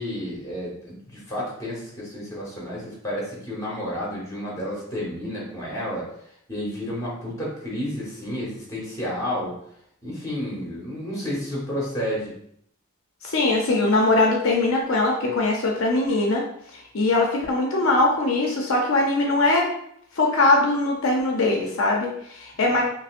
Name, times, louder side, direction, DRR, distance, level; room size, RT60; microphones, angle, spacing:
voice 1, 0.0-6.1 6.5-9.6 10.0-12.3, equal, 15° left, -5 dB, 1.2 m, -31 dB
voice 2, 13.2-16.4 16.7-19.7 20.2-22.8, left 2 dB, 65° left, 0 dB, 0.5 m, -21 dB
5.0 x 2.0 x 2.5 m, 0.69 s
head